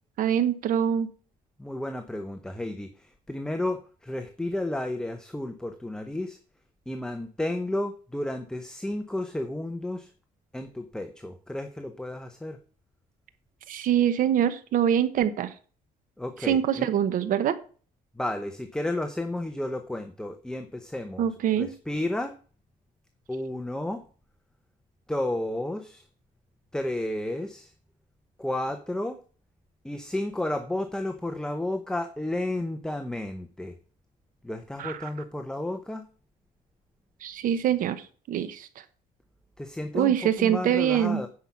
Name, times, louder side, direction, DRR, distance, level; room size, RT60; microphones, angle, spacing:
voice 1, 0.2-1.1 13.7-15.5 16.4-17.6 21.2-21.7 34.8-34.9 37.2-38.7 39.9-41.2, right 10 dB, 60° right, 12 dB, 1.0 m, -24 dB
voice 2, 1.6-6.4 6.9-10.1 10.5-12.6 16.2-16.9 18.1-21.3 21.6-22.4 23.3-24.0 25.1-26.1 26.7-27.7 28.4-29.2 29.8-33.8 34.4-36.1 39.6-41.3, left 1 dB, 5° left, 7 dB, 0.8 m, -32 dB
9.6 x 5.7 x 5.8 m, 0.40 s
cardioid pair, 130°, 16 cm